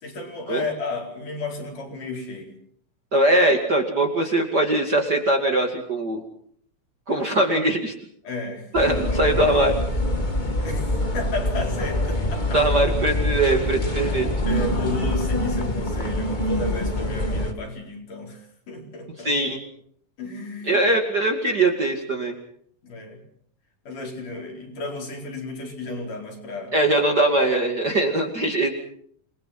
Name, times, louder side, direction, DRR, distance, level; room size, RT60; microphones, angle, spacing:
voice 1, 0.0-2.5 8.2-9.0 10.4-10.9 11.1-12.6 14.5-19.3 20.2-20.8 22.8-23.2 23.9-26.7, left 2 dB, 60° left, 1 dB, 6.1 m, -33 dB
voice 2, 3.1-6.2 7.1-7.9 8.7-9.8 12.5-14.3 19.2-19.6 20.7-22.4 26.7-28.7, right 1 dB, 30° right, 2 dB, 2.4 m, -21 dB
sound 1, 8.7-17.5, left 1 dB, 20° left, 1.2 m, -25 dB
28.0 x 21.5 x 5.9 m, 0.63 s
omnidirectional pair, 4.0 m